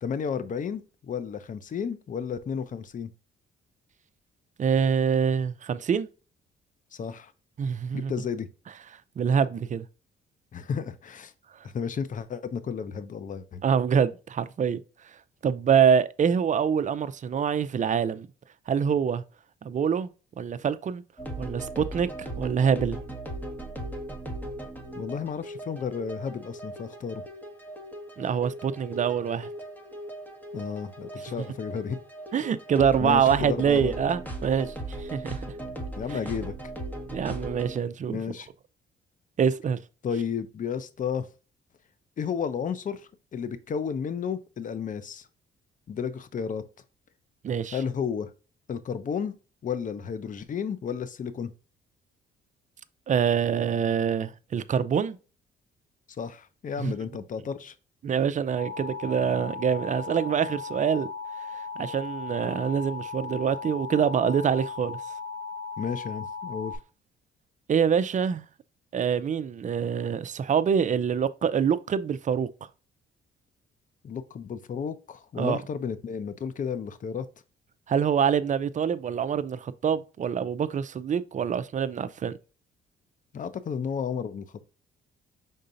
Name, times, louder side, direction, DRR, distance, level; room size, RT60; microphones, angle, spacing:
voice 1, 0.0-3.1 6.9-7.3 7.9-8.5 10.5-11.3 11.6-13.6 24.9-27.2 30.5-32.0 33.0-33.9 35.6-36.5 38.1-38.5 40.0-41.3 42.2-43.0 43.3-45.3 45.9-46.6 47.7-48.3 48.7-49.3 49.6-51.5 56.2-57.7 65.8-66.8 74.0-77.3 83.3-84.6, left 7 dB, 40° left, 0.6 m, -32 dB
voice 2, 4.6-6.1 7.6-8.1 9.2-9.8 13.6-14.8 15.4-18.3 18.7-19.2 19.6-20.1 20.4-21.0 21.4-23.0 28.2-29.5 32.3-35.4 37.1-38.2 39.4-39.8 47.4-47.8 53.1-55.2 56.8-56.9 58.0-61.1 61.8-65.0 67.7-68.4 68.9-72.5 75.4-75.6 77.9-82.3, right 7 dB, 40° right, 0.5 m, -25 dB
sound 1, 21.2-37.8, right 1 dB, 10° left, 1.2 m, -38 dB
Alarm, 58.6-66.8, left 4 dB, 55° left, 1.5 m, -37 dB
5.4 x 3.8 x 2.5 m
cardioid pair, 90°, 20 cm